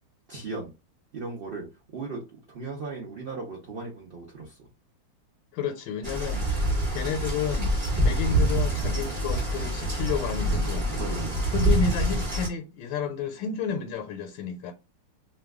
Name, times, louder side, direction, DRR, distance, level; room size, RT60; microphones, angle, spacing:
voice 1, 0.3-0.7 1.1-1.7 1.9-2.2 2.5-4.7 11.0-11.4, right 3 dB, 65° right, 0.5 m, -36 dB
voice 2, 5.5-7.7 8.0-10.9 11.5-14.7, left 7 dB, 80° left, 1.3 m, -31 dB
sound 1, 6.0-12.5, right 1 dB, 25° right, 0.9 m, -26 dB
3.0 x 2.2 x 3.4 m
omnidirectional pair, 2.0 m